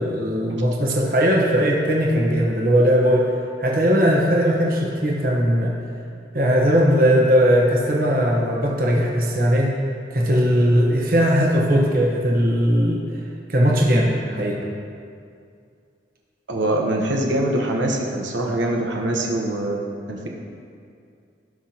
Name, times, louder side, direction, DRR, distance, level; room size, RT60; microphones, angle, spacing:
voice 1, 0.0-3.3 3.6-5.7 6.3-9.7 10.1-13.0 13.5-14.6, equal, 50° right, -2 dB, 1.2 m, -19 dB
voice 2, 16.5-19.8 20.1-20.3, right 1 dB, 90° right, -1 dB, 1.1 m, -23 dB
17.0 x 6.0 x 2.9 m, 2.4 s
head